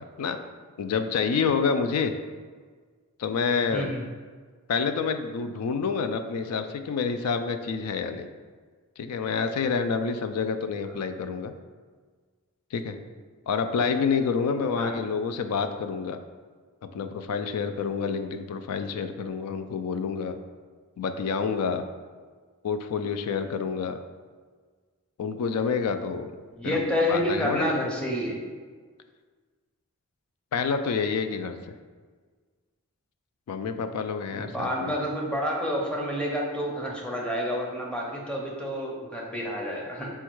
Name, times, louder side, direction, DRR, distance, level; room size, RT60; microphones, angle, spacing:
voice 1, 0.8-2.1 3.2-4.0 4.7-8.3 9.0-11.5 12.7-12.9 13.5-16.2 16.9-20.4 21.0-21.8 22.6-24.0 25.2-26.3 26.6-26.8 27.1-27.9 30.5-31.6 33.5-34.9, left 5 dB, 80° left, 9 dB, 0.3 m, -28 dB
voice 2, 3.7-4.0 14.4-15.0 26.6-28.4 34.3-40.1, equal, 5° left, -2 dB, 0.6 m, -29 dB
4.4 x 2.3 x 4.5 m, 1.5 s
head